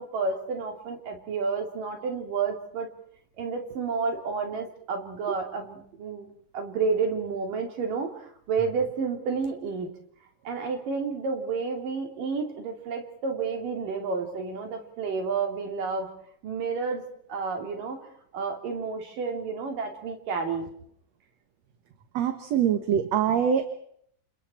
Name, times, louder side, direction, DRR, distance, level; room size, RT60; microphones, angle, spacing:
voice 1, 0.0-2.9 3.4-6.3 6.5-9.9 10.4-16.1 16.4-18.1 18.3-20.7, right 5 dB, 80° right, 3 dB, 4.8 m, -30 dB
voice 2, 22.1-23.7, right 8 dB, 60° right, 7 dB, 2.3 m, -24 dB
29.5 x 27.5 x 4.4 m, 0.67 s
omnidirectional pair, 3.8 m